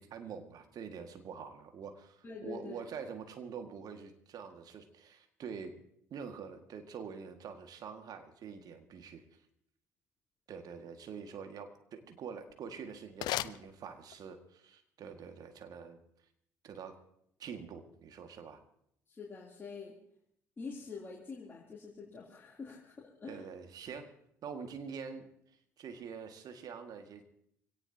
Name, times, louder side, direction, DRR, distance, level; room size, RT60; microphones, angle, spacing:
voice 1, 0.0-5.7 6.1-9.2 10.5-16.0 16.6-17.0 17.4-18.6 23.3-24.1 24.4-25.3 25.8-27.2, right 6 dB, 45° right, 6 dB, 2.0 m, -45 dB
voice 2, 2.2-2.8 19.1-20.0 20.6-23.4, left 4 dB, 25° left, -4 dB, 3.2 m, -46 dB
sound 1, 12.3-14.4, left 14 dB, 55° left, 0.5 m, -40 dB
24.0 x 17.5 x 2.9 m, 0.71 s
figure-of-eight pair, 55°, 9 cm